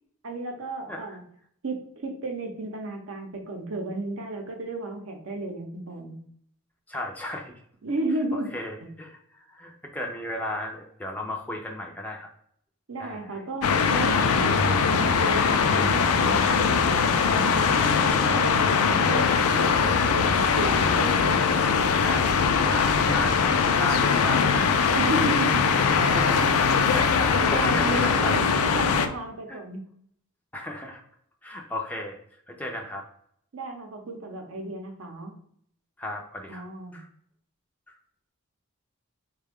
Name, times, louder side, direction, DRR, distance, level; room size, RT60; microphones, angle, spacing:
voice 1, 0.2-1.2 1.6-6.2 7.8-8.5 12.9-21.6 24.9-25.7 26.0-26.2 27.1-29.8 33.5-35.3 36.5-37.0, right 2 dB, 65° right, 3 dB, 0.7 m, -33 dB
voice 2, 6.9-7.5 8.3-12.3 13.0-13.4 22.0-24.8 25.1-25.4 26.0-26.5 26.9-28.4 29.5-29.6 30.5-31.0 31.4-32.2 32.5-33.0 36.0-36.6 36.9-37.1 37.9-38.0, left 1 dB, 5° left, 0 dB, 0.4 m, -35 dB
sound 1, 13.6-29.1, left 5 dB, 80° left, 0.4 m, -21 dB
3.9 x 2.2 x 3.4 m, 0.67 s
head